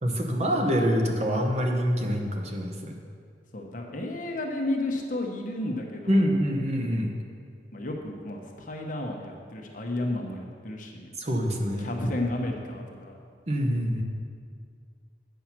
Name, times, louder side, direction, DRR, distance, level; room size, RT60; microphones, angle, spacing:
voice 1, 0.0-2.9 6.1-7.1 11.2-11.9 13.5-14.0, equal, 40° right, 2 dB, 0.8 m, -25 dB
voice 2, 3.5-6.3 7.7-11.1 11.8-13.1, left 1 dB, 45° left, 1 dB, 1.0 m, -32 dB
8.6 x 5.6 x 5.9 m, 2.1 s
head